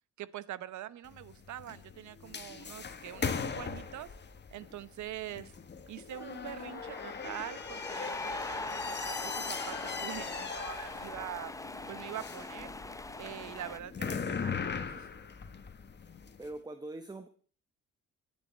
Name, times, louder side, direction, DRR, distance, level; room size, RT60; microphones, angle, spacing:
voice 1, 0.2-4.1 4.5-5.5 5.9-11.5 11.9-12.7 13.2-14.6 14.9-15.1, right 12 dB, 70° right, 17 dB, 1.0 m, -44 dB
sound 1, 1.0-16.5, left 5 dB, 35° left, 1.5 m, -40 dB
sound 2, 6.6-13.8, left 2 dB, 10° left, 0.9 m, -41 dB
voice 2, 16.4-17.3, right 2 dB, 15° right, 9 dB, 1.1 m, -42 dB
23.5 x 9.9 x 4.4 m, 0.43 s
cardioid pair, 90°, 30 cm